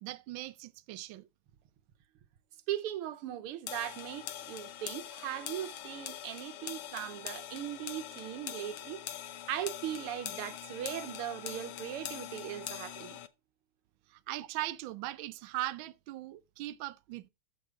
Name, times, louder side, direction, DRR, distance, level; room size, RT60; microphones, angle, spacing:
voice 1, 0.0-1.3 14.1-17.3, right 16 dB, 70° right, 1.4 m, -39 dB
voice 2, 2.7-13.2, right 12 dB, 90° right, 1.8 m, -39 dB
sound 1, 3.7-13.3, left 11 dB, 75° left, 1.7 m, -43 dB
14.0 x 7.2 x 3.7 m
omnidirectional pair, 2.4 m